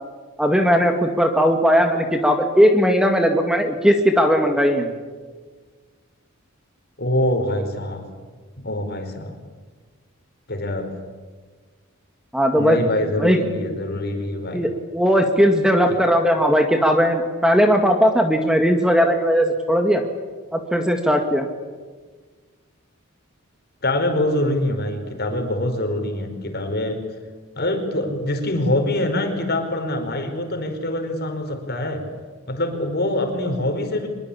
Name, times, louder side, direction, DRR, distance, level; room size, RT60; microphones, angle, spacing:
voice 1, 0.4-4.9 12.3-12.8 13.2-13.4 14.5-20.0 20.5-21.5, equal, 5° right, 5 dB, 2.0 m, -18 dB
voice 2, 7.0-8.1 8.6-9.4 10.5-10.9 12.5-14.7 15.9-16.0 23.8-27.0 27.5-32.1 32.5-34.1, left 1 dB, 50° left, 5 dB, 4.9 m, -24 dB
25.0 x 22.0 x 8.7 m, 1.4 s
head